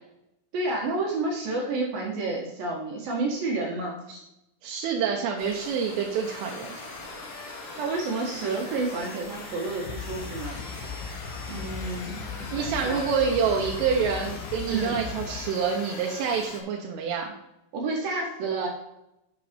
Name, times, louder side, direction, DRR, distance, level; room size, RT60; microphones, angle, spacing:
voice 1, 0.5-4.2 7.8-10.6 11.5-13.1 14.7-15.0 17.7-18.7, right 3 dB, 65° right, 0 dB, 2.4 m, -30 dB
voice 2, 4.6-6.7 12.5-17.3, right 6 dB, 80° right, 0 dB, 3.5 m, -27 dB
sound 1, 5.4-14.4, equal, 10° left, 1.6 m, -44 dB
sound 2, 6.2-16.6, left 4 dB, 60° left, 2.9 m, -42 dB
sound 3, 9.9-15.4, left 6 dB, 90° left, 3.9 m, -38 dB
9.2 x 6.4 x 5.2 m, 0.85 s
omnidirectional pair, 5.8 m